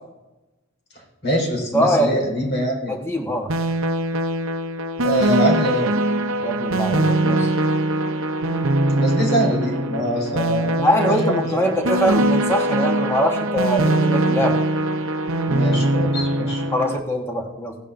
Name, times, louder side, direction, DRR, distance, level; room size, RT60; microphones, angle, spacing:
voice 1, 1.2-2.9 5.0-5.9 8.9-11.7 15.5-16.6, equal, 55° left, -3 dB, 4.4 m, -24 dB
voice 2, 1.7-2.2 2.9-3.5 6.4-7.5 10.8-14.6 16.7-17.8, equal, 10° left, 2 dB, 1.2 m, -22 dB
sound 1, 3.5-17.0, right 1 dB, 70° right, 0.7 m, -22 dB
17.0 x 10.0 x 2.6 m, 1.0 s
head